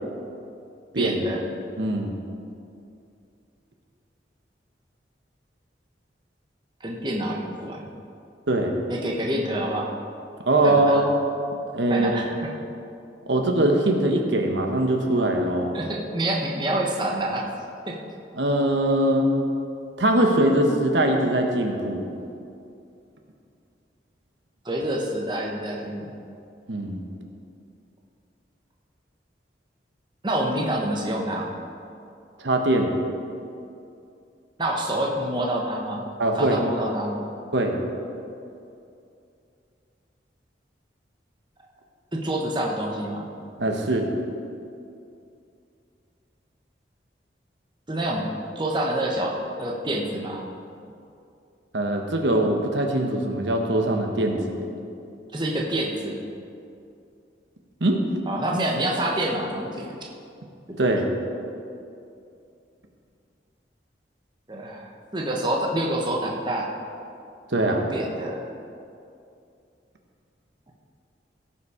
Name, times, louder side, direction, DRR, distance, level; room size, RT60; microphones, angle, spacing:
voice 1, 1.0-1.4 6.8-7.8 8.9-9.9 10.6-11.0 11.9-12.5 15.7-17.4 17.9-18.0 24.6-26.1 30.2-31.5 34.6-36.0 36.4-37.2 42.1-43.3 47.9-48.3 48.5-50.4 55.3-56.2 58.3-59.9 60.8-60.9 64.5-66.7 67.7-68.5, right 1 dB, 25° right, -1 dB, 1.0 m, -27 dB
voice 2, 1.8-2.1 8.5-8.7 10.5-11.1 11.7-12.1 13.3-15.8 18.4-19.3 20.0-22.0 26.7-27.0 32.4-32.9 36.2-36.6 37.5-37.8 43.6-44.1 51.7-54.7 57.8-58.0 60.8-61.1 67.5-67.9, right 1 dB, 80° right, 3 dB, 1.1 m, -22 dB
16.5 x 5.8 x 4.9 m, 2.6 s
head